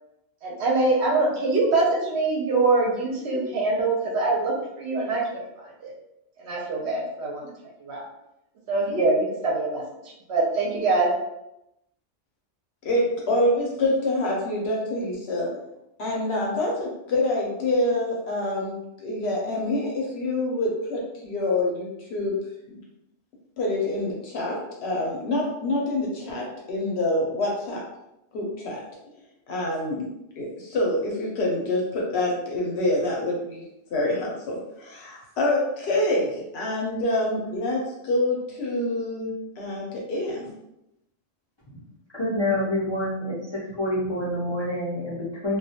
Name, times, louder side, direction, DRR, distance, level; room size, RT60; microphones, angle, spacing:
voice 1, 0.4-5.9 6.4-7.5 7.8-8.0 8.7-11.1, right 3 dB, 65° right, -2 dB, 0.8 m, -24 dB
voice 2, 12.8-15.5 16.0-22.4 22.7-22.8 23.6-27.8 28.3-28.8 29.5-30.1 30.4-33.6 33.9-39.3 39.6-40.5, left 1 dB, 65° left, -2 dB, 0.8 m, -26 dB
voice 3, 42.2-43.4 43.8-45.6, left 1 dB, 45° left, -8 dB, 0.3 m, -26 dB
2.2 x 2.1 x 2.7 m, 0.85 s
omnidirectional pair, 1.3 m